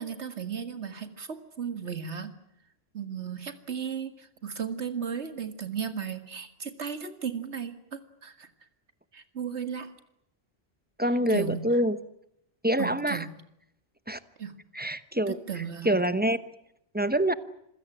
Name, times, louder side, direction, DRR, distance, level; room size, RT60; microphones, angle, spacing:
voice 1, 0.0-2.3 2.9-8.5 9.1-9.9 11.3-11.6 12.8-13.3 14.4-14.5 15.3-16.0, right 7 dB, 85° right, 10 dB, 2.2 m, -35 dB
voice 2, 11.0-12.0 12.6-13.2 14.1-14.2 14.7-15.4 15.8-16.4 16.9-17.3, right 1 dB, 10° right, 13 dB, 0.9 m, -25 dB
27.0 x 16.5 x 9.9 m, 0.80 s
omnidirectional pair, 1.1 m